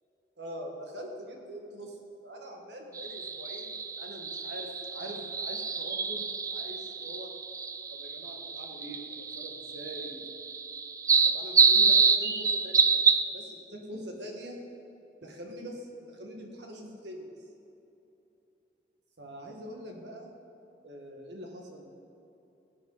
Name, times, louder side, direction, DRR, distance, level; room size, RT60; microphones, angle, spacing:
voice 1, 0.4-2.0 2.2-7.3 7.9-10.4 11.3-12.8 13.2-14.6 15.2-17.3 19.2-20.3 20.8-21.9, equal, 85° right, 1 dB, 1.7 m, -43 dB
sound 1, 3.0-13.2, right 5 dB, 20° right, 0.3 m, -27 dB
17.5 x 8.5 x 4.0 m, 2.9 s
head